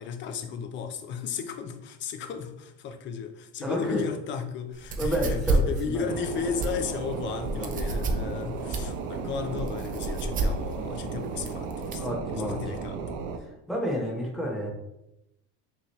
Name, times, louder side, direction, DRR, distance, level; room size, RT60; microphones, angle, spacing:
voice 1, 0.0-13.2, left 6 dB, 35° left, 0.5 m, -34 dB
voice 2, 3.6-4.1 5.0-6.1 12.0-12.6 13.4-14.7, equal, ahead, 0.8 m, -30 dB
sound 1, 4.7-12.1, right 3 dB, 25° right, 0.4 m, -31 dB
sound 2, 6.1-13.4, right 5 dB, 80° right, 0.6 m, -35 dB
5.5 x 3.0 x 3.1 m
cardioid pair, 155°, 33 cm